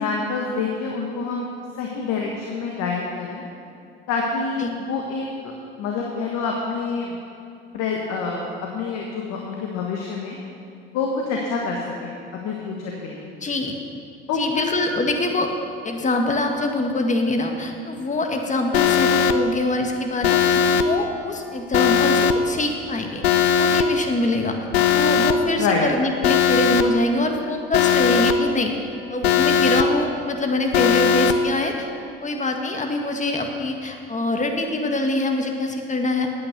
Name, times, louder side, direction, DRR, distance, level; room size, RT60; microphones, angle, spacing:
voice 1, 0.0-1.5 1.7-3.4 4.1-7.2 7.7-10.4 10.9-12.1 12.4-13.3 14.3-14.6 25.6-25.9, left 4 dB, 60° left, -1 dB, 1.6 m, -27 dB
voice 2, 13.4-13.7 14.4-15.5 15.8-23.2 23.6-24.6 24.9-28.7 29.1-31.9 32.2-36.3, left 2 dB, 25° left, 3 dB, 1.8 m, -24 dB
Alarm, 18.7-19.3 20.2-20.8 21.7-22.3 23.2-23.8 24.7-25.3 26.2-26.8 27.7-28.3 29.2-29.8 30.7-31.3, left 8 dB, 90° left, 0.6 m, -18 dB
9.6 x 9.1 x 6.8 m, 2.7 s
hypercardioid pair, 65°, 30 cm